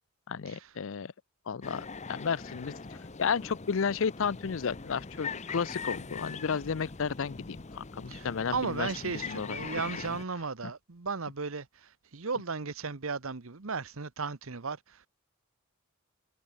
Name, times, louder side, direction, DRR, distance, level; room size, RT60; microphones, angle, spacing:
voice 1, 0.3-1.1 1.5-2.7 3.2-8.9 9.3-9.6, left 6 dB, 65° left, 0.5 m, -32 dB
sound 1, 1.6-10.2, left 4 dB, 30° left, 0.9 m, -42 dB
voice 2, 8.1-15.1, right 4 dB, 70° right, 1.1 m, -35 dB
head